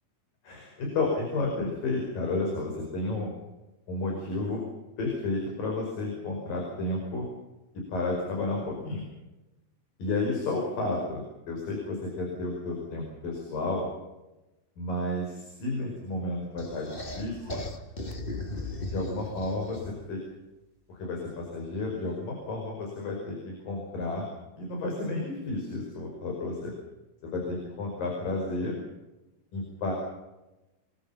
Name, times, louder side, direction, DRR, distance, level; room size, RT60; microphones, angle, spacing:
voice 1, 0.4-3.3 3.9-4.6 5.0-7.3 7.8-9.1 10.0-13.9 14.8-17.6 18.9-20.2 20.9-24.3 24.6-26.7 27.2-28.8 29.5-29.9, left 2 dB, 70° left, 1 dB, 6.9 m, -32 dB
sound 1, 16.6-20.1, left 2 dB, 20° left, 1.5 m, -37 dB
28.0 x 23.0 x 5.8 m, 1.0 s
omnidirectional pair, 4.2 m